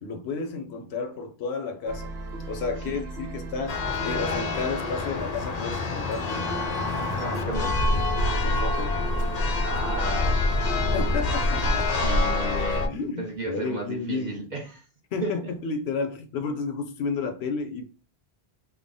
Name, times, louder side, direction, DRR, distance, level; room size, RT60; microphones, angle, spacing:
voice 1, 0.0-2.1 2.5-6.5 8.4-9.0 10.9-11.9 12.8-14.3 15.1-17.8, left 4 dB, 90° left, 0.9 m, -32 dB
sound 1, 1.9-11.8, right 4 dB, 85° right, 1.0 m, -39 dB
Church bell, 3.7-12.9, left 2 dB, 55° left, 0.5 m, -26 dB
voice 2, 7.2-8.1 9.6-10.5 12.0-12.9 13.2-14.8 15.2-15.3, right 2 dB, 45° right, 0.9 m, -34 dB
3.5 x 2.1 x 3.7 m
omnidirectional pair, 1.1 m